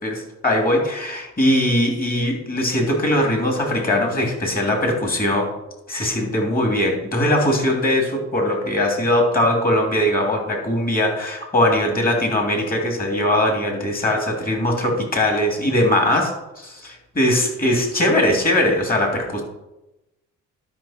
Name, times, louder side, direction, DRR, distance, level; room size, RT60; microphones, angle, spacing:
voice 1, 0.0-5.5 5.9-19.4, left 1 dB, 30° left, 1 dB, 2.9 m, -20 dB
12.0 x 5.7 x 4.4 m, 0.96 s
cardioid pair, 90°, 30 cm